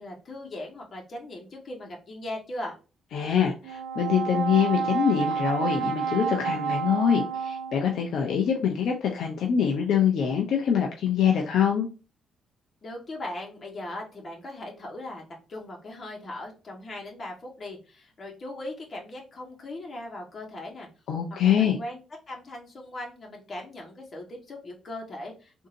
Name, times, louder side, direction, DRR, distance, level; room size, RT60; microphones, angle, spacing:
voice 1, 0.0-2.8 12.8-15.2 15.5-20.9 21.4-22.0 22.3-25.7, left 1 dB, 40° left, -1 dB, 1.5 m, -39 dB
voice 2, 3.1-11.9 21.1-21.8, left 8 dB, 70° left, 1 dB, 0.6 m, -24 dB
Brass instrument, 3.6-8.0, right 6 dB, 80° right, 0.5 m, -30 dB
3.7 x 2.7 x 2.6 m, 0.34 s
cardioid pair, 90°, 0 cm